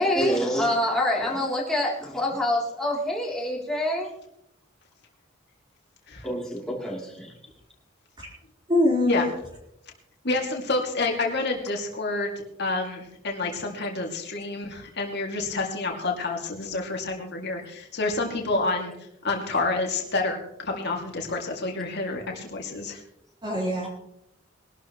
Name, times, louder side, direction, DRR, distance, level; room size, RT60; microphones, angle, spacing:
voice 1, 0.0-4.1 6.2-7.3, left 1 dB, 5° left, -4 dB, 3.2 m, -26 dB
voice 2, 8.7-9.3 23.4-23.9, left 1 dB, 25° right, -5 dB, 4.2 m, -23 dB
voice 3, 10.2-12.3 12.6-18.9 19.2-23.0, left 3 dB, 55° left, 1 dB, 2.4 m, -28 dB
22.0 x 12.0 x 3.1 m, 0.79 s
head